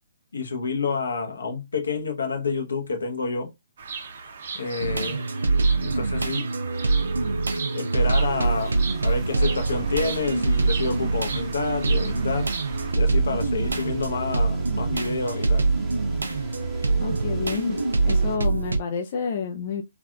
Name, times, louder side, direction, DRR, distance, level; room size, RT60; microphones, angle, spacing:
voice 1, 0.3-3.5 4.5-5.3 5.8-6.5 7.7-12.5 13.0-15.7, left 4 dB, 80° left, 0.9 m, -29 dB
Bird vocalization bird call bird song, 3.8-12.9, right 5 dB, 60° right, 0.7 m, -37 dB
sound 1, 4.8-18.8, right 3 dB, 90° right, 0.5 m, -24 dB
sound 2, 8.0-18.4, right 2 dB, 10° right, 0.8 m, -38 dB
voice 2, 17.0-17.8 18.0-19.8, left 6 dB, 45° left, 0.4 m, -29 dB
3.3 x 2.4 x 2.2 m
hypercardioid pair, 140°, 0 cm